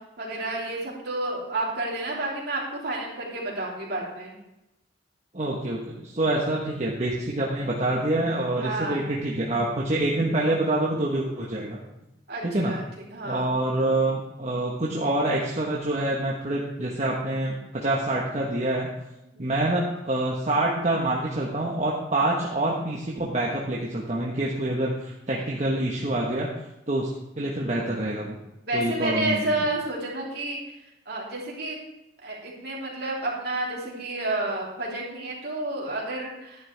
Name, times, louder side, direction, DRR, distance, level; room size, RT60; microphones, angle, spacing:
voice 1, 0.2-4.4 8.6-9.0 12.3-12.8 13.1-13.5 19.3-19.5 28.7-30.6 31.0-31.8 32.2-36.6, right 2 dB, 60° right, -4 dB, 3.4 m, -30 dB
voice 2, 5.3-11.8 12.4-12.8 13.2-18.9 19.4-26.5 26.9-28.4 28.7-29.5, right 1 dB, 40° right, -3 dB, 1.3 m, -26 dB
11.0 x 10.5 x 3.4 m, 0.90 s
head